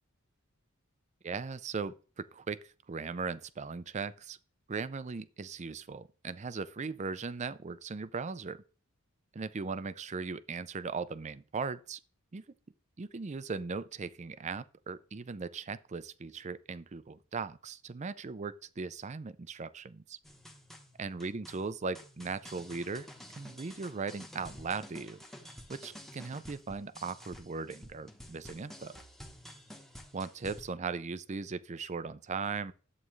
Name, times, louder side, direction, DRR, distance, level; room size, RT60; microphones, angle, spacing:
voice 1, 1.2-4.4 4.7-8.6 9.3-12.0 12.3-12.4 13.0-20.2 21.0-23.1 23.4-25.2 25.7-29.0 30.1-32.7, right 4 dB, 35° right, 0.5 m, -38 dB
sound 1, 20.2-30.7, equal, ahead, 1.0 m, -51 dB
11.0 x 8.4 x 3.2 m
head